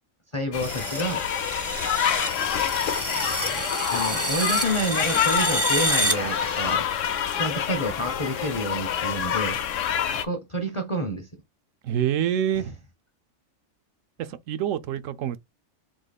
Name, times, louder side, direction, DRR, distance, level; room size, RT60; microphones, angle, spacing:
voice 1, 0.3-1.2 3.9-6.9 7.4-9.6 10.1-11.3 12.5-12.7, equal, 30° left, 0.6 m, -29 dB
sound 1, 0.5-10.2, left 9 dB, 70° left, 1.0 m, -27 dB
sound 2, 0.6-6.8, right 1 dB, 20° right, 0.4 m, -29 dB
voice 2, 11.8-12.8 14.3-15.4, right 10 dB, 75° right, 0.9 m, -26 dB
3.8 x 2.8 x 4.1 m
omnidirectional pair, 1.4 m